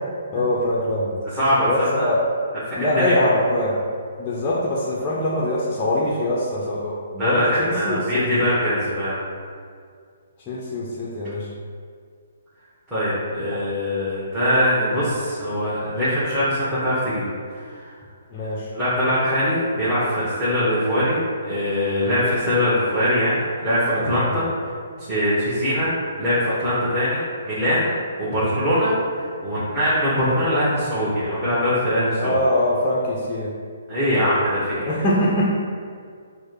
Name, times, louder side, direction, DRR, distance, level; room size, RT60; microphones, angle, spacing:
voice 1, 0.3-1.2 1.6-2.2 2.7-3.8 4.2-8.4 10.5-11.5 13.5-13.6 18.3-18.7 32.2-33.5 34.8-35.5, left 1 dB, 20° left, -6 dB, 0.6 m, -23 dB
voice 2, 1.3-1.7 1.9-2.1 2.6-3.4 7.2-9.2 12.9-17.3 17.6-17.9 18.7-24.5 25.0-25.9 26.2-27.9 28.2-32.4 33.9-34.9, equal, 10° right, -14 dB, 1.2 m, -22 dB
6.2 x 2.1 x 3.0 m, 2.1 s
figure-of-eight pair, 130°, 0 cm